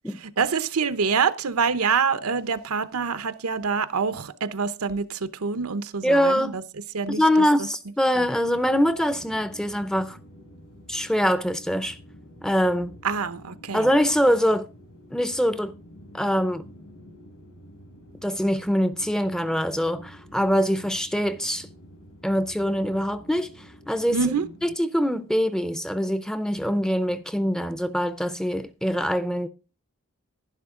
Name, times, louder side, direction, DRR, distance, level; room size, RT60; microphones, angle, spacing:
voice 1, 0.4-6.6 6.9-7.2 8.2-8.3 13.0-13.9 24.1-24.4, right 5 dB, 85° right, 0.8 m, -26 dB
voice 2, 6.0-6.6 7.1-10.2 10.9-12.0 12.4-13.0 13.7-14.7 15.1-15.8 16.1-16.7 18.2-21.7 22.2-24.3 24.6-29.5, equal, 5° left, 0.4 m, -24 dB
sound 1, 8.1-24.8, equal, 75° left, 5.0 m, -48 dB
11.5 x 11.0 x 3.7 m
head